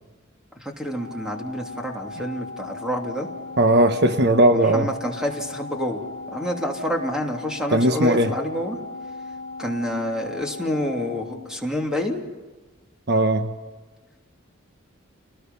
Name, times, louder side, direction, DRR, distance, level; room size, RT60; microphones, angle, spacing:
voice 1, 0.6-3.3 4.5-6.0 6.3-8.8 9.6-12.2, equal, 5° right, 1 dB, 3.1 m, -28 dB
Organ, 0.9-12.2, left 3 dB, 20° left, 4.2 m, -37 dB
voice 2, 3.6-4.9 7.7-8.3 13.1-13.5, right 1 dB, 55° right, 7 dB, 1.1 m, -18 dB
30.0 x 20.0 x 5.6 m, 1.3 s
head